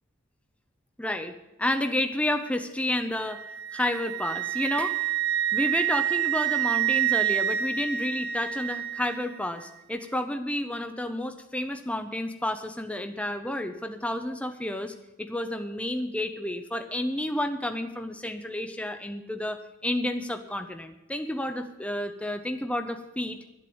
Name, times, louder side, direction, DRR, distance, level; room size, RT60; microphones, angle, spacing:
voice 1, 1.0-3.4 3.7-5.1 5.5-23.4, left 1 dB, 5° left, 7 dB, 0.6 m, -30 dB
Wind instrument woodwind instrument, 3.3-9.2, right 11 dB, 50° right, 0.4 m, -28 dB
12.5 x 7.6 x 7.0 m, 0.93 s
head